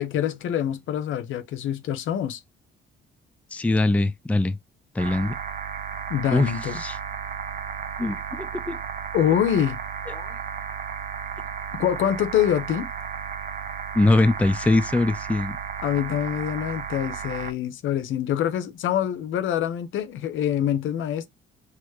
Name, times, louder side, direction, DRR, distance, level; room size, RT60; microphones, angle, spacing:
voice 1, 0.0-2.4 6.1-6.8 9.1-9.8 11.7-12.9 15.8-21.3, left 10 dB, 80° left, 0.9 m, -25 dB
voice 2, 3.5-4.6 4.9-5.4 6.3-6.5 6.8-7.0 8.0-8.8 10.2-10.3 13.9-15.6, left 2 dB, 5° left, 0.4 m, -22 dB
sound 1, 5.0-17.5, right 6 dB, 45° right, 0.9 m, -34 dB
4.7 x 3.0 x 3.1 m
cardioid pair, 90°, 20 cm